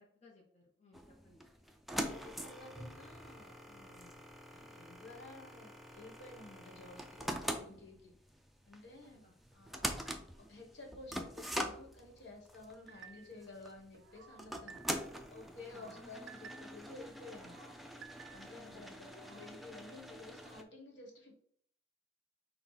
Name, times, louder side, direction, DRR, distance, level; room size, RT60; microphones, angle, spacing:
voice 1, 0.0-1.5 9.1-9.3 15.7-16.0 18.5-18.9, left 3 dB, 40° left, -2 dB, 0.7 m, -63 dB
sound 1, 0.9-20.6, equal, ahead, 0.3 m, -44 dB
voice 2, 2.0-4.2 4.5-8.1 8.7-9.2 9.5-9.9 10.5-14.8 15.3-17.6 18.3-21.4, left 2 dB, 65° left, 0 dB, 1.2 m, -53 dB
sound 2, 12.9-13.5 13.9-15.2 15.5-16.9 17.3-18.6 19.0-19.5, right 7 dB, 90° right, 0.3 m, -56 dB
5.6 x 2.2 x 3.9 m, 0.64 s
head